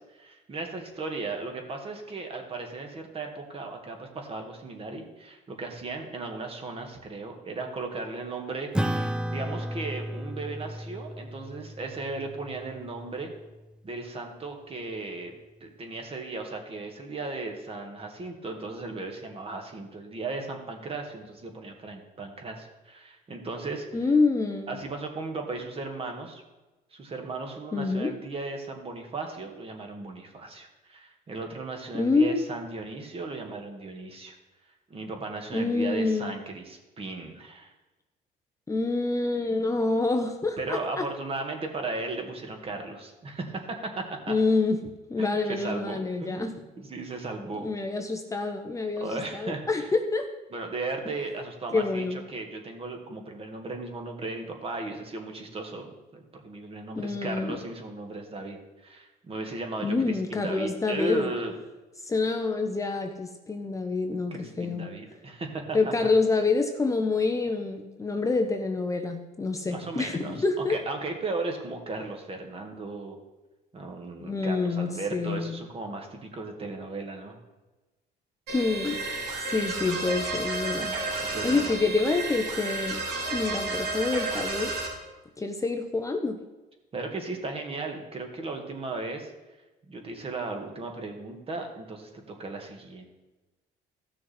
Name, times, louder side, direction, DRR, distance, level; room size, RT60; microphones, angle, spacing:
voice 1, 0.1-13.3 13.8-15.4 15.6-23.9 24.7-26.4 26.9-34.4 34.9-37.7 40.6-44.4 45.2-47.7 49.0-49.9 50.5-61.5 64.3-65.9 69.6-73.2 73.7-77.4 81.1-81.8 86.9-89.3 89.9-93.1, right 3 dB, 35° right, 3 dB, 1.9 m, -36 dB
Acoustic guitar / Strum, 8.7-13.5, equal, 5° right, 0.4 m, -33 dB
voice 2, 23.9-24.8 27.7-28.1 31.9-32.5 35.5-36.3 38.7-41.0 44.3-44.8 45.1-46.5 47.6-50.3 51.7-52.2 57.0-57.6 59.8-61.3 62.0-64.9 65.7-70.8 74.2-75.6 78.5-79.0 79.4-81.0 81.4-83.0 83.3-84.7 85.4-86.4, left 3 dB, 20° left, 5 dB, 0.9 m, -27 dB
sound 1, 78.5-84.9, right 2 dB, 80° right, 3.3 m, -32 dB
15.0 x 6.3 x 4.4 m, 1.1 s
cardioid pair, 110°, 17 cm